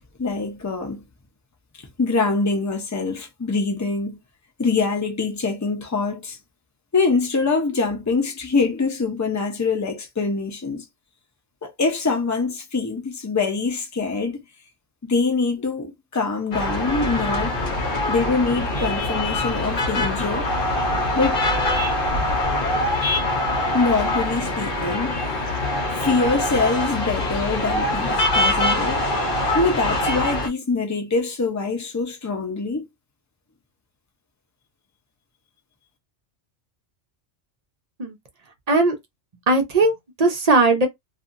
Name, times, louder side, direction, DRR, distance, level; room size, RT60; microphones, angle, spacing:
voice 1, 0.2-1.0 2.0-4.2 4.6-6.4 6.9-10.8 11.6-14.4 15.0-17.6 18.1-20.5 21.1-21.5 23.7-25.2 25.9-29.0 29.5-32.9, left 4 dB, 20° left, 0.5 m, -24 dB
sound 1, 16.5-30.5, left 1 dB, 50° left, 0.9 m, -23 dB
voice 2, 39.5-40.9, right 3 dB, 40° right, 0.6 m, -18 dB
2.7 x 2.5 x 2.5 m
omnidirectional pair, 1.2 m